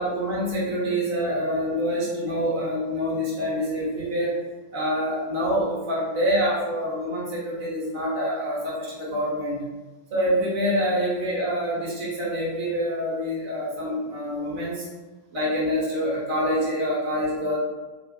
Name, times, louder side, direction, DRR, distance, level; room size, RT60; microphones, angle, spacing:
voice 1, 0.0-4.4 4.7-9.6 10.1-14.9 15.3-17.6, equal, 50° right, -7 dB, 1.1 m, -26 dB
2.8 x 2.4 x 2.8 m, 1.2 s
figure-of-eight pair, 90°, 0 cm